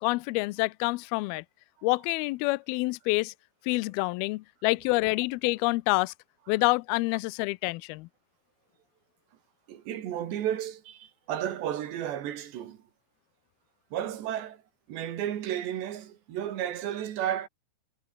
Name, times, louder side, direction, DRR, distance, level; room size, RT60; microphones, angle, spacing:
voice 1, 0.0-1.4 1.8-3.3 3.7-6.1 6.5-8.1, left 23 dB, 85° left, 2.2 m, -27 dB
voice 2, 9.7-12.8 13.9-14.6 14.9-17.5, right 11 dB, 80° right, 4.3 m, -33 dB
omnidirectional pair, 4.9 m